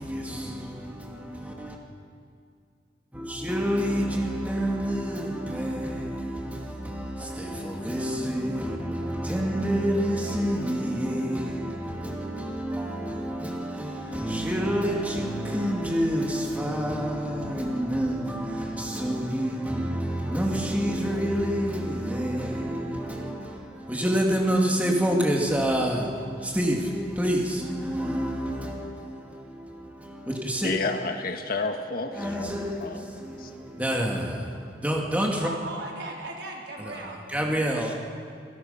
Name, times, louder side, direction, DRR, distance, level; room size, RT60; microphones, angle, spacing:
voice 1, 0.0-1.8 3.1-30.7 32.1-35.5 36.8-37.0 37.3-37.9, equal, 10° right, 2.3 m, -28 dB
voice 2, 30.6-33.0 33.4-33.5, left 3 dB, 55° left, 1.5 m, -31 dB
voice 3, 35.4-37.2 37.7-38.0, right 2 dB, 80° right, 4.0 m, -37 dB
26.5 x 17.5 x 5.7 m
head